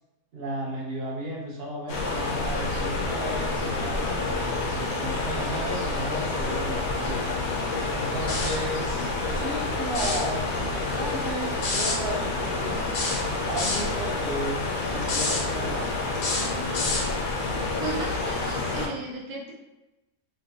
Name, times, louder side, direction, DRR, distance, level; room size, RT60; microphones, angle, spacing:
voice 1, 0.3-7.4 7.9-12.8 13.5-14.6 14.8-16.0, right 1 dB, 55° right, -3 dB, 0.7 m, -34 dB
sound 1, 1.9-18.9, left 3 dB, 80° left, 1.1 m, -28 dB
sound 2, 8.3-8.7 9.9-10.3 11.6-12.0 12.9-13.9 15.0-15.4 16.2-17.1, left 3 dB, 55° left, 0.8 m, -28 dB
voice 2, 17.8-19.5, right 3 dB, 85° right, -3 dB, 1.1 m, -35 dB
3.3 x 2.2 x 2.7 m, 1.0 s
omnidirectional pair, 1.5 m